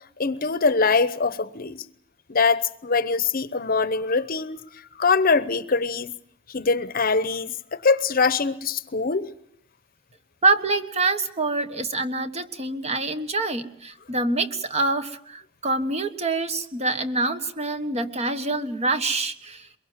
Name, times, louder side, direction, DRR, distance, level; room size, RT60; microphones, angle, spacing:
voice 1, 0.2-1.8 2.3-4.6 5.0-6.1 6.5-7.5 7.8-9.3, left 4 dB, 50° left, 0.9 m, -23 dB
voice 2, 10.4-19.7, right 3 dB, 35° right, 1.5 m, -26 dB
23.0 x 22.5 x 7.4 m
head